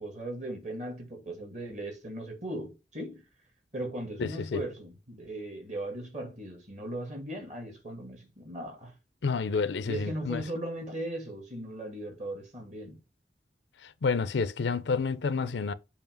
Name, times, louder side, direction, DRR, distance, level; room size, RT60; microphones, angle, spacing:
voice 1, 0.0-3.2 3.7-8.9 9.9-13.0 15.4-15.6, right 1 dB, 40° right, 2.0 m, -38 dB
voice 2, 4.2-4.6 9.2-10.4 13.8-15.7, left 4 dB, 75° left, 0.5 m, -29 dB
7.1 x 2.9 x 5.3 m
head